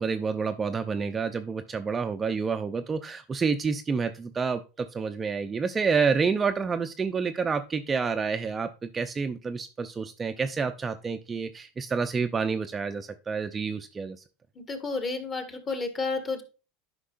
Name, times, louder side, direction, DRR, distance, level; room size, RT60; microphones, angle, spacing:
voice 1, 0.0-14.2, right 5 dB, 20° right, 7 dB, 0.5 m, -29 dB
voice 2, 14.6-16.4, left 3 dB, 25° left, 7 dB, 1.6 m, -31 dB
10.0 x 5.2 x 2.5 m, 0.32 s
supercardioid pair, 115°, 0 cm